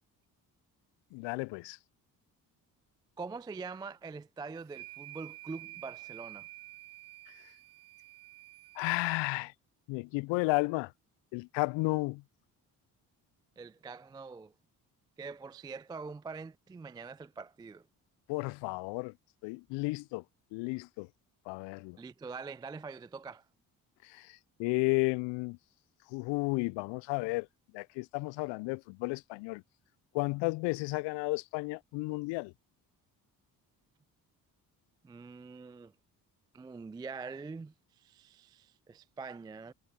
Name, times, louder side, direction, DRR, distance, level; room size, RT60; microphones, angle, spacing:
voice 1, 1.1-1.8 8.8-9.5 9.9-10.9 11.3-12.2 18.3-19.1 19.4-20.2 20.5-21.1 21.5-22.0 24.0-25.6 26.1-27.5 27.7-29.6 30.1-32.5, left 26 dB, 75° left, 0.5 m, -33 dB
voice 2, 3.2-6.5 13.6-14.5 15.2-17.9 22.0-23.5 35.0-35.9 36.5-39.7, right 4 dB, 10° right, 0.3 m, -44 dB
sound 1, 4.6-8.9, right 17 dB, 60° right, 0.5 m, -49 dB
hypercardioid pair, 50°, 45 cm